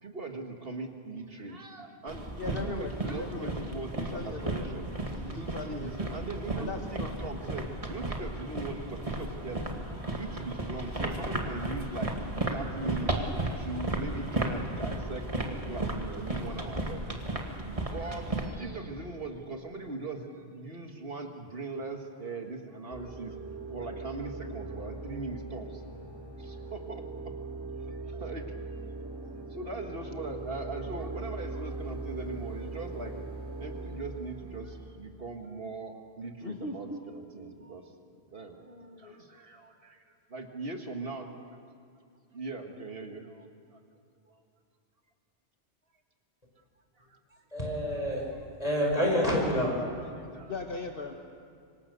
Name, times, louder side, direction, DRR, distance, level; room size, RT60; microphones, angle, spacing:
voice 1, 0.0-4.9 5.2-9.8 10.2-12.2 12.5-13.2 13.5-17.0 17.7-23.4 23.7-25.8 26.4-27.4 27.7-28.5 29.2-33.2 33.6-37.9 38.3-41.6 42.3-43.8 44.3-44.4 47.0-47.4 50.2-50.6, right 3 dB, 60° right, 4 dB, 1.9 m, -40 dB
sound 1, 2.1-18.5, right 2 dB, 30° right, 2.1 m, -34 dB
voice 2, 2.4-3.5 3.8-4.7 5.1-6.2 6.5-7.3 36.4-37.0 38.6-39.2 50.5-51.1, left 3 dB, 60° left, 3 dB, 1.4 m, -39 dB
sound 2, 22.9-34.9, right 3 dB, 5° right, 6.0 m, -40 dB
voice 3, 47.5-48.3 48.6-50.1, equal, 35° left, -1 dB, 5.8 m, -28 dB
25.5 x 25.0 x 6.8 m, 2.2 s
omnidirectional pair, 1.1 m